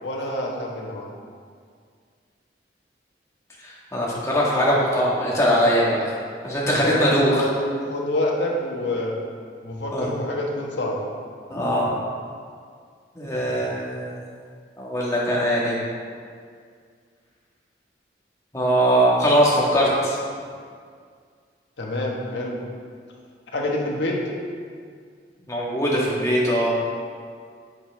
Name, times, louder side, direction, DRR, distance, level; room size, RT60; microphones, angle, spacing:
voice 1, 0.0-1.1 6.7-7.5 7.9-9.1 9.6-11.0 21.8-22.6 23.5-24.2, left 1 dB, 85° left, -2 dB, 1.4 m, -26 dB
voice 2, 3.6-6.2 6.4-7.4 9.9-10.1 11.5-11.9 13.1-14.2 14.8-15.8 18.5-20.2 25.5-26.8, equal, 15° left, -5 dB, 1.5 m, -21 dB
8.3 x 7.6 x 3.4 m, 2.1 s
head